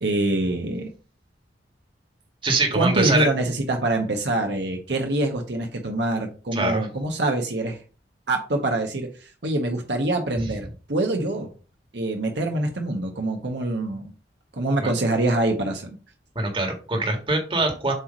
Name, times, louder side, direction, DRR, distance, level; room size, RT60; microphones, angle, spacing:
voice 1, 0.0-0.9 2.7-7.8 8.3-11.5 11.9-14.1 14.5-16.0, right 2 dB, 70° right, 3 dB, 1.2 m, -25 dB
voice 2, 2.4-3.3 6.5-6.9 14.8-14.9 16.4-17.9, right 2 dB, 30° right, 2 dB, 1.8 m, -23 dB
7.9 x 3.1 x 5.3 m, 0.36 s
head